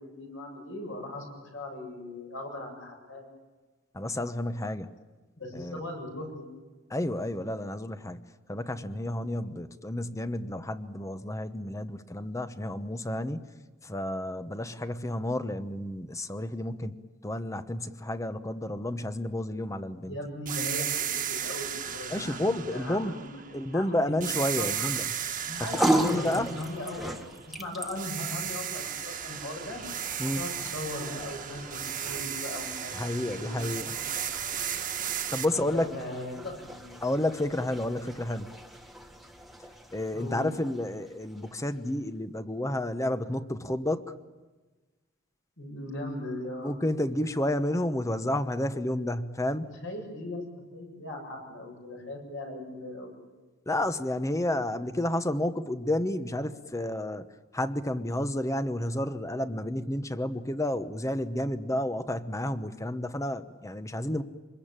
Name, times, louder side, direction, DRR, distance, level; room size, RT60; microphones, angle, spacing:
voice 1, 0.0-3.3 5.4-6.5 20.0-24.2 24.6-24.9 25.4-27.2 27.6-29.8 30.2-34.2 35.5-36.9 40.1-40.4 45.6-46.7 49.7-53.1, left 1 dB, 65° left, 2 dB, 7.7 m, -39 dB
voice 2, 3.9-4.9 5.5-5.8 6.9-13.4 13.8-20.2 22.1-23.2 23.5-25.1 25.6-26.5 30.2-30.4 32.9-33.9 35.3-35.9 37.0-38.5 39.9-44.0 46.6-49.7 53.7-57.3 57.5-64.2, left 1 dB, 15° left, 11 dB, 1.0 m, -31 dB
sound 1, 20.5-23.7 24.2-27.6 28.0-35.5, right 9 dB, 40° right, 1.6 m, -35 dB
sound 2, 25.4-41.8, right 1 dB, ahead, 1.6 m, -37 dB
25.5 x 21.5 x 8.9 m, 1.2 s
head